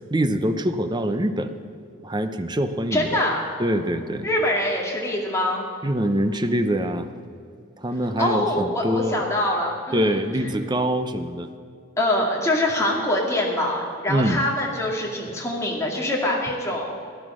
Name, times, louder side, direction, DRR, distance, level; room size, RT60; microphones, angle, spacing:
voice 1, 0.0-1.5 2.0-3.2 3.6-4.3 5.8-7.1 7.8-9.2 9.9-11.5 14.1-14.4, right 1 dB, 20° right, 8 dB, 0.7 m, -24 dB
voice 2, 2.9-3.5 4.2-5.7 8.2-10.2 12.0-16.9, left 1 dB, 15° left, -2 dB, 2.2 m, -24 dB
14.5 x 10.5 x 6.2 m, 2.4 s
head